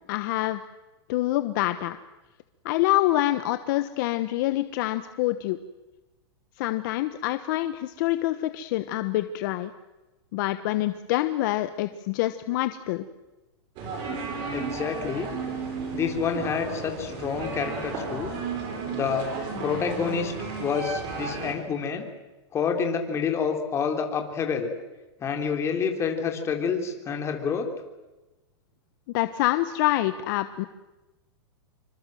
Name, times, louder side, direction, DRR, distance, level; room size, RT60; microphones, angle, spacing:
voice 1, 0.1-0.6 1.1-2.0 2.6-5.6 6.6-9.7 10.3-13.0 29.1-30.7, left 16 dB, 45° left, 11 dB, 1.1 m, -26 dB
sound 1, 13.8-21.5, right 4 dB, 35° right, 7.2 m, -33 dB
voice 2, 14.5-15.3 15.9-18.3 18.9-19.3 19.6-20.3 20.6-22.1 22.5-24.7 25.2-27.7, left 6 dB, 20° left, 4 dB, 3.5 m, -28 dB
26.5 x 24.5 x 7.8 m, 1.1 s
hypercardioid pair, 150°, 15 cm